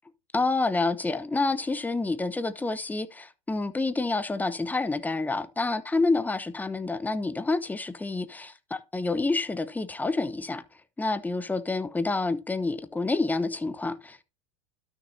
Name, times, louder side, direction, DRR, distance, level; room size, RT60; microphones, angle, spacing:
voice 1, 0.3-10.6 11.0-14.2, left 3 dB, 10° left, 0.9 m, -28 dB
12.5 x 6.5 x 2.7 m
hypercardioid pair, 90°, 18 cm